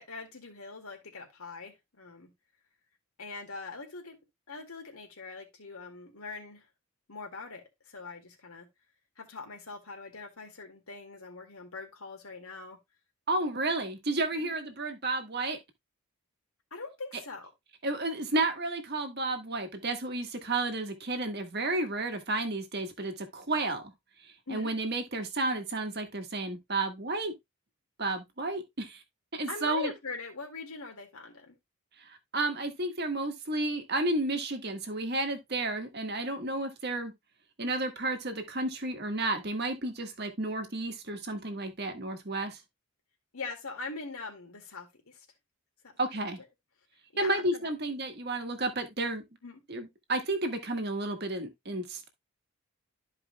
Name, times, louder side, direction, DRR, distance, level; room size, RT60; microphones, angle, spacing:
voice 1, 0.0-2.3 3.2-4.2 4.5-6.7 7.1-8.7 9.2-12.8 14.3-14.5 16.7-17.5 24.5-24.7 29.5-31.6 43.3-45.3 46.4-46.5 47.1-47.7 49.4-49.6, left 4 dB, 80° left, 2.1 m, -42 dB
voice 2, 13.3-15.6 17.8-23.8 24.5-27.3 28.0-29.0 29.3-29.9 32.0-37.1 37.6-42.6 46.0-46.4 47.2-49.2 49.7-52.1, right 2 dB, 50° right, 1.5 m, -32 dB
13.5 x 4.8 x 2.2 m
head